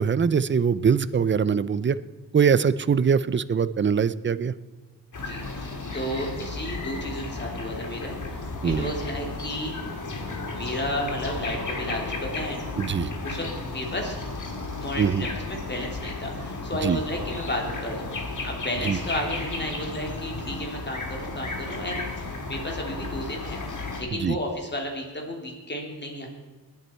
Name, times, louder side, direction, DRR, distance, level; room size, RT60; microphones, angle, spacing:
voice 1, 0.0-2.0 2.3-4.5 8.6-8.9 12.8-13.1 15.0-15.2 16.8-17.0 18.8-19.0 24.2-24.4, right 6 dB, 30° right, 16 dB, 0.5 m, -22 dB
sound 1, 5.1-24.0, left 3 dB, 50° left, 2.1 m, -34 dB
voice 2, 5.1-9.8 10.5-12.7 13.2-14.2 14.8-23.6 24.0-26.3, left 1 dB, 25° left, 1 dB, 3.0 m, -33 dB
19.5 x 8.3 x 4.5 m, 1.3 s
wide cardioid pair, 115°, 39 cm